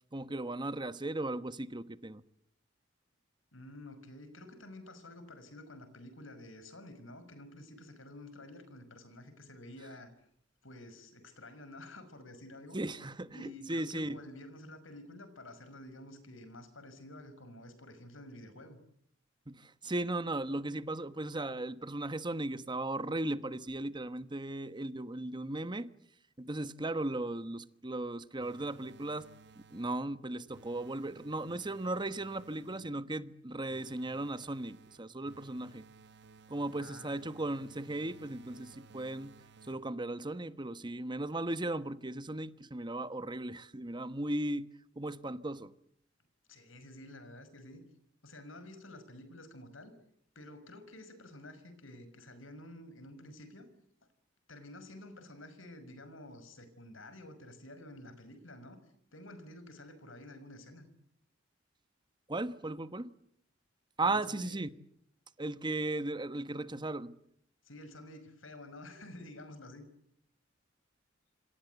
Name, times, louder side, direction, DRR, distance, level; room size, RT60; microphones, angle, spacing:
voice 1, 0.1-2.2 12.7-14.2 19.5-25.9 26.4-29.3 29.7-35.8 36.5-39.4 39.7-44.7 45.0-45.7 62.3-63.1 64.0-64.7 65.4-67.2, right 2 dB, 25° right, 1.1 m, -36 dB
voice 2, 3.5-10.1 10.6-12.8 13.3-18.8 36.8-37.2 46.5-47.8 48.2-49.9 50.4-53.7 54.5-58.8 59.1-60.9 64.0-64.6 67.6-69.9, left 1 dB, 85° left, 5.7 m, -50 dB
sound 1, 28.4-30.1 30.5-33.0 33.7-40.1, right 4 dB, 60° right, 1.2 m, -58 dB
27.0 x 26.5 x 8.2 m
head